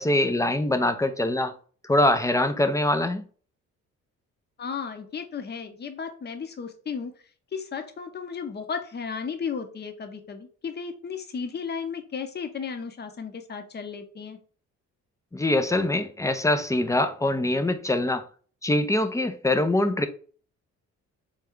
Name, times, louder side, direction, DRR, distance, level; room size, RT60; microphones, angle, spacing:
voice 1, 0.0-1.5 1.8-3.2 15.3-18.2 18.6-20.1, left 1 dB, 10° left, 0.4 m, -23 dB
voice 2, 4.6-7.1 7.5-14.4, left 6 dB, 35° left, 0.8 m, -34 dB
3.5 x 3.3 x 3.5 m
cardioid pair, 90°, 30 cm